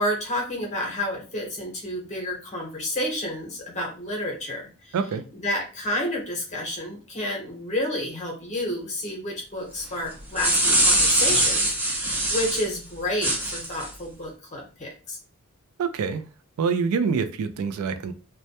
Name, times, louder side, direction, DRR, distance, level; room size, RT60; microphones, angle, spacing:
voice 1, 0.0-5.0 5.3-15.2, left 1 dB, 35° left, 0 dB, 0.8 m, -30 dB
sound 1, 10.1-12.7 13.2-13.9, right 1 dB, 10° right, 0.5 m, -22 dB
voice 2, 15.8-16.2 16.6-18.1, right 5 dB, 75° right, 10 dB, 0.3 m, -25 dB
2.1 x 2.1 x 2.8 m, 0.36 s
head